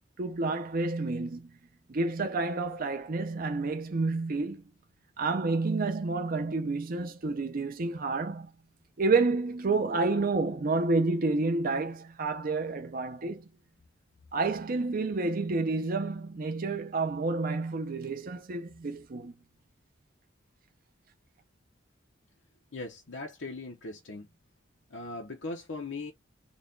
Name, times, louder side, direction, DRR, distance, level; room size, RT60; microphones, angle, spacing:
voice 1, 0.2-1.5 1.9-4.6 5.2-8.5 9.0-13.5 14.3-19.3, right 3 dB, 50° right, 0.6 m, -29 dB
voice 2, 22.7-24.3 24.9-26.1, left 3 dB, 80° left, 0.8 m, -39 dB
4.0 x 2.3 x 3.8 m
head